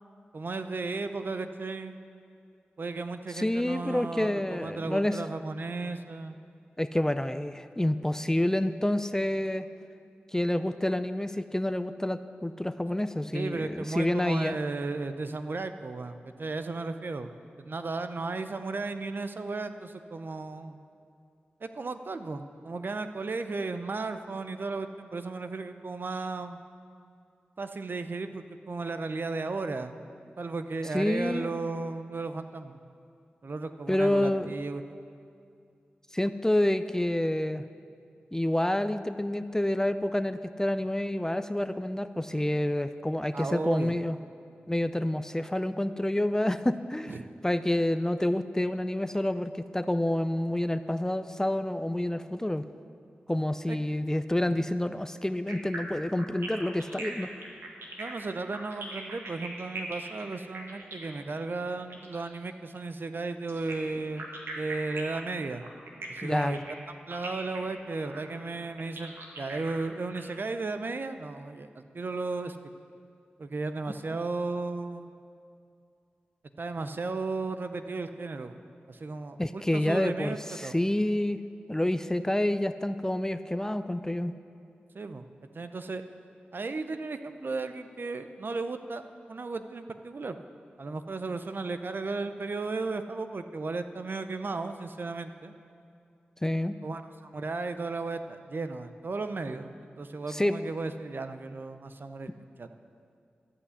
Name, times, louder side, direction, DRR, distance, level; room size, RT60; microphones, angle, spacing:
voice 1, 0.3-2.0 2.8-6.4 13.3-17.3 17.6-20.8 21.6-26.6 27.6-30.0 30.4-32.8 33.4-35.0 43.3-44.0 47.1-47.2 53.7-53.8 54.6-54.7 58.0-64.3 64.6-65.6 66.1-66.6 66.9-72.6 73.4-75.1 76.6-78.6 78.9-80.8 84.9-85.2 85.5-86.0 86.5-89.0 89.3-90.4 90.8-95.5 96.8-102.3 102.6-102.7, right 3 dB, 60° right, 9 dB, 0.6 m, -35 dB
voice 2, 3.3-5.2 6.8-9.7 10.3-14.6 30.9-31.5 33.9-34.5 36.1-37.6 38.3-44.2 44.7-47.2 47.4-52.7 53.3-57.3 66.2-66.6 79.4-81.4 81.7-84.3 96.4-96.7 100.3-100.6, left 1 dB, 15° left, 12 dB, 0.4 m, -28 dB
sound 1, 55.5-62.3 63.5-70.2, right 2 dB, 80° right, 1.5 m, -41 dB
12.5 x 5.7 x 8.1 m, 2.4 s
cardioid pair, 45°, 4 cm